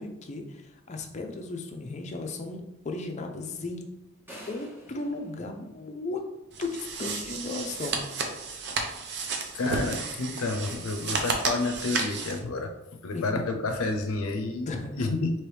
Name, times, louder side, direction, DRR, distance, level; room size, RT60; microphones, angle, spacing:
voice 1, 0.0-3.9 4.5-6.3 6.6-8.5 13.1-13.2 14.7-15.1, left 2 dB, 35° left, 3 dB, 0.4 m, -36 dB
sound 1, 4.3-6.4, equal, 10° right, 0.8 m, -48 dB
sound 2, 6.5-12.4, right 4 dB, 50° right, 0.6 m, -32 dB
voice 2, 9.5-12.7 13.0-15.3, left 3 dB, 85° left, 4 dB, 0.5 m, -30 dB
4.6 x 2.9 x 3.3 m, 0.93 s
head